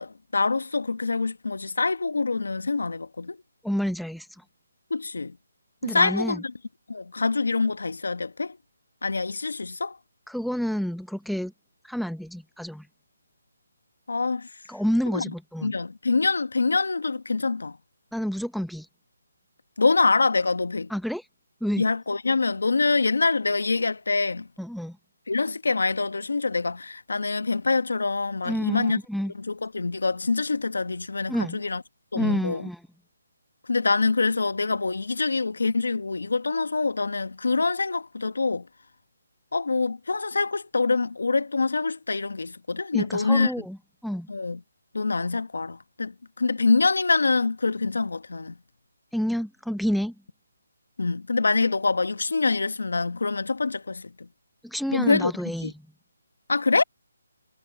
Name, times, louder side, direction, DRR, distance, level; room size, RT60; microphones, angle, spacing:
voice 1, 0.0-3.4 4.9-5.4 5.8-6.4 6.9-8.6 9.0-10.0 14.1-14.5 15.1-15.3 15.6-17.8 19.8-20.9 21.8-24.5 25.3-29.0 29.3-31.8 32.1-32.7 33.7-38.7 39.5-43.5 44.3-44.6 44.9-48.5 51.0-54.3 54.9-55.3 55.6-55.7 56.5-56.8, left 3 dB, 80° left, 1.3 m, -25 dB
voice 2, 3.6-4.4 5.8-6.4 10.3-11.5 11.8-12.9 14.7-15.7 18.1-18.9 20.9-21.2 21.6-21.8 24.6-25.0 28.4-29.3 31.3-31.6 32.1-32.8 42.9-43.8 44.0-44.3 49.1-50.1 54.6-55.7, equal, ahead, 0.9 m, -29 dB
hypercardioid pair, 165°, 0 cm